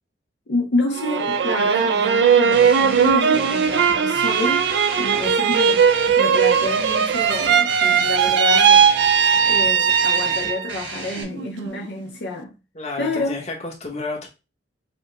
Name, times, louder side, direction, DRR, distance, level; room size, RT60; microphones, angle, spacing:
voice 1, 0.5-4.7 5.0-5.8 6.2-8.9 9.4-12.5 13.0-13.4, left 2 dB, 70° left, 0.7 m, -28 dB
sound 1, 0.9-10.7 11.2-11.8, right 7 dB, 70° right, 0.3 m, -18 dB
sound 2, 2.5-11.2, right 3 dB, 90° right, 2.1 m, -35 dB
voice 2, 12.7-14.3, left 3 dB, 40° left, 1.2 m, -31 dB
5.9 x 2.2 x 3.4 m
head